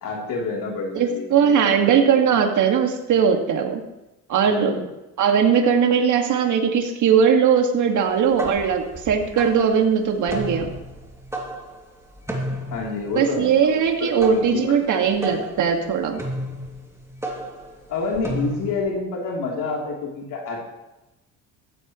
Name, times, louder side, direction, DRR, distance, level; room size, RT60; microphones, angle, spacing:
voice 1, 0.0-1.9 2.3-2.4 4.5-4.9 12.7-15.0 17.9-20.6, left 4 dB, 65° left, -2 dB, 3.5 m, -29 dB
voice 2, 0.9-3.8 4.3-4.7 5.2-10.7 13.2-16.2, right 7 dB, 55° right, 3 dB, 2.1 m, -19 dB
sound 1, 8.1-18.9, right 1 dB, 10° right, 2.6 m, -33 dB
15.5 x 14.5 x 3.2 m, 0.97 s
cardioid pair, 115°, 35 cm